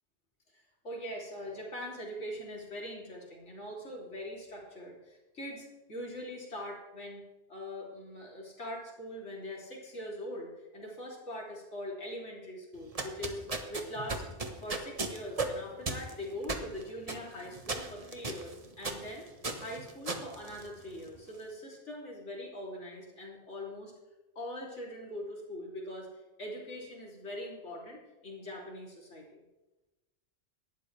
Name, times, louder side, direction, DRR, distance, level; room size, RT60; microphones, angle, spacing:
voice 1, 0.5-13.4 13.7-14.3 14.6-19.3 19.5-23.9 24.4-26.1 26.4-29.4, left 1 dB, 85° left, -2 dB, 3.5 m, -42 dB
sound 1, 12.8-21.2, right 3 dB, 30° right, 1.2 m, -37 dB
18.0 x 12.0 x 3.3 m, 1.1 s
omnidirectional pair, 1.2 m